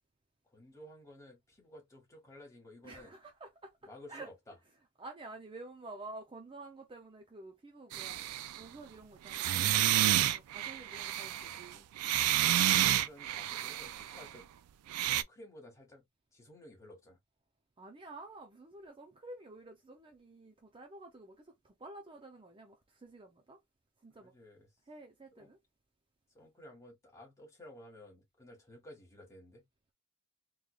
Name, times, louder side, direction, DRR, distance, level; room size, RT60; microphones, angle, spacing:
voice 1, 0.4-3.2 3.8-4.6 11.2-11.6 12.8-14.5 15.0-16.0 16.3-17.2 24.2-24.7 25.4-25.5 26.3-29.6, left 1 dB, 15° left, 1.7 m, -54 dB
voice 2, 2.8-3.8 4.1-4.3 5.0-8.2 8.6-11.9 17.8-23.6 24.0-24.3 24.9-25.6, right 2 dB, 25° right, 0.5 m, -50 dB
sound 1, 7.9-8.6 9.3-14.3 14.9-15.2, right 12 dB, 90° right, 0.3 m, -30 dB
3.6 x 3.2 x 2.3 m
head